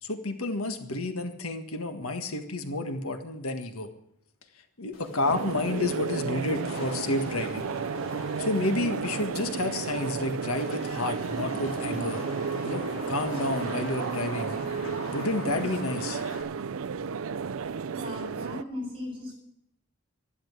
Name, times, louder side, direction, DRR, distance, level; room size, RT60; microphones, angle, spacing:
voice 1, 0.0-3.9 4.8-7.7 8.4-12.2 12.6-14.6 15.1-16.2, left 2 dB, 85° left, 7 dB, 1.7 m, -30 dB
Wind / Rain, 4.9-16.4, left 1 dB, 70° left, 3.1 m, -41 dB
sound 1, 5.3-18.6, right 6 dB, 70° right, 0.5 m, -33 dB
voice 2, 17.9-19.4, left 1 dB, 25° right, -3 dB, 7.9 m, -37 dB
13.0 x 11.5 x 8.1 m, 0.76 s
head